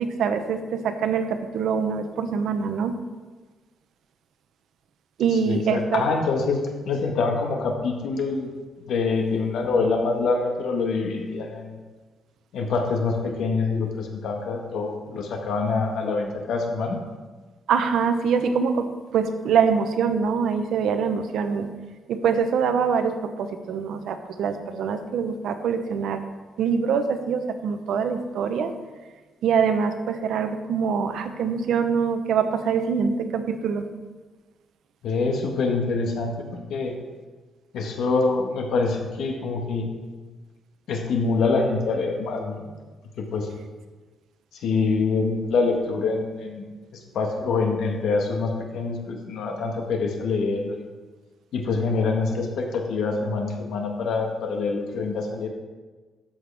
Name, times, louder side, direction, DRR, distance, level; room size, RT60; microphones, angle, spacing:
voice 1, 0.0-2.9 5.2-6.0 17.7-21.7 22.1-26.2 26.6-28.7 29.4-33.9, right 6 dB, 75° right, 8 dB, 0.9 m, -24 dB
voice 2, 5.4-8.5 8.8-11.8 12.5-17.0 35.0-36.9 37.7-40.0 40.9-42.7 43.2-43.5 44.5-50.9 51.5-55.5, left 4 dB, 75° left, 2 dB, 1.6 m, -25 dB
12.5 x 7.8 x 3.5 m, 1.3 s
cardioid pair, 145°, 0 cm